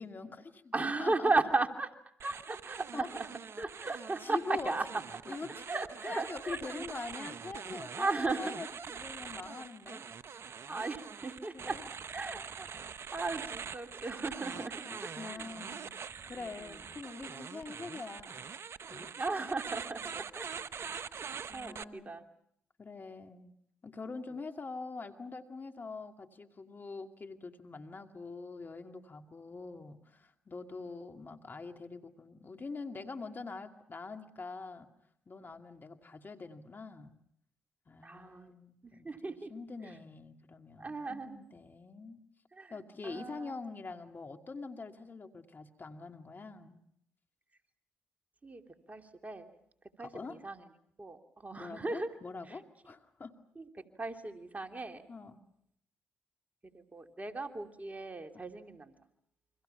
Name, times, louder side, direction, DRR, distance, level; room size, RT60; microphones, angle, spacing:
voice 1, 0.0-1.3 2.9-3.1 4.2-4.7 5.3-5.7 6.0-10.0 10.9-11.0 11.5-11.9 14.5-16.0 16.2-18.4 18.9-19.2 20.0-20.1 21.5-22.2 22.8-23.5 23.8-34.9 35.3-37.2 37.9-42.2 42.7-46.8 50.0-50.4 51.6-53.4 55.1-55.4 58.3-58.4, left 4 dB, 40° left, 5 dB, 2.4 m, -44 dB
voice 2, 0.7-1.9 2.2-3.3 3.6-4.9 5.2-5.4 5.7-6.6 8.0-8.5 9.4-9.5 10.7-11.8 12.1-12.7 13.1-14.7 15.0-15.5 16.3-16.8 19.2-20.5 20.8-21.2 21.5-22.2 38.0-38.5 38.8-39.5 40.8-41.4 42.6-42.7 43.0-43.5 48.4-48.6 48.9-49.5 50.0-50.6 51.0-52.1 52.5-52.6 53.6-55.0 56.7-58.9, right 3 dB, 30° right, 4 dB, 3.0 m, -36 dB
sound 1, 2.2-21.8, right 6 dB, 55° right, 0.9 m, -44 dB
29.5 x 25.0 x 5.8 m, 0.70 s
hypercardioid pair, 45°, 5 cm